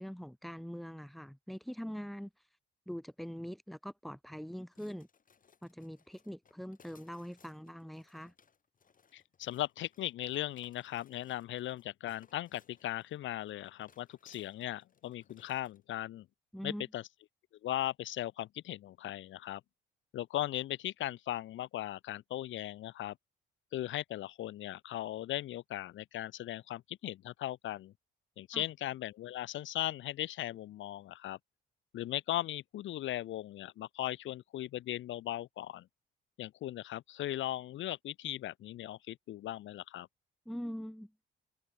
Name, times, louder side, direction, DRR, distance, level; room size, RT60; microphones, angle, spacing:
voice 1, 0.0-2.3 2.9-5.1 5.6-8.3 16.5-16.9 28.5-28.6 40.4-41.1, equal, ahead, 1.6 m, -43 dB
sound 1, 4.7-15.8, left 6 dB, 45° left, 7.9 m, -67 dB
voice 2, 9.1-16.3 16.6-17.0 17.6-19.6 20.1-23.1 23.7-27.9 28.4-31.4 31.9-35.9 36.4-40.1, left 13 dB, 75° left, 1.0 m, -38 dB
cardioid pair, 90°, 20 cm